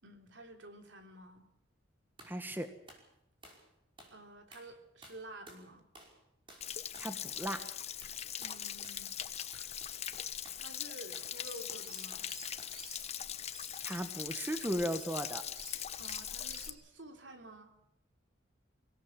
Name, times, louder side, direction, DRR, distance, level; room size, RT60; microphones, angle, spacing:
voice 1, 0.0-1.5 4.1-5.9 8.4-9.1 10.6-12.3 16.0-17.7, right 1 dB, 65° right, 4 dB, 3.3 m, -51 dB
voice 2, 2.2-2.7 7.0-7.6 13.8-15.4, equal, 10° right, 8 dB, 1.3 m, -36 dB
sound 1, 2.2-2.4 2.9-3.1 3.4-3.7 4.0-4.2 4.5-4.7 5.0-5.7 5.9-6.2 6.5-6.7 6.9-7.1 7.5-7.7 8.0-10.6 11.1-11.3 11.7-12.3 12.6-12.8, right 1 dB, 25° right, 5.4 m, -55 dB
Stream / Splash splatter / Trickle dribble, 6.6-16.7, left 9 dB, 35° left, 0.9 m, -41 dB
sound 2, 11.3-13.1 13.5-16.8, right 6 dB, 50° right, 2.8 m, -54 dB
24.5 x 17.5 x 7.4 m, 0.81 s
head